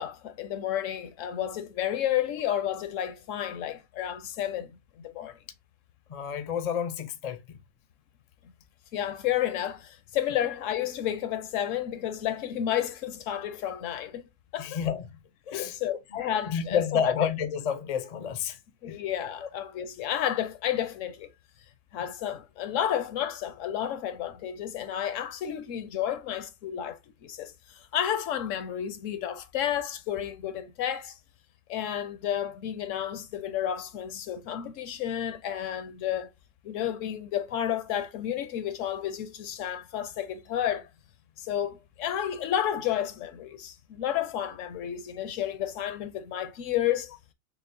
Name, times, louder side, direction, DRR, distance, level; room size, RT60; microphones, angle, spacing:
voice 1, 0.0-5.4 8.9-14.8 15.5-17.1 18.8-21.3 21.9-31.2 31.7-36.3 36.6-40.9 41.4-47.1, left 10 dB, 75° left, 0.9 m, -31 dB
voice 2, 6.1-7.6 14.6-15.1 15.5-16.0 16.5-18.6 18.8-19.0 35.5-35.6, left 7 dB, 55° left, 0.4 m, -30 dB
6.0 x 2.1 x 2.6 m
omnidirectional pair, 1.4 m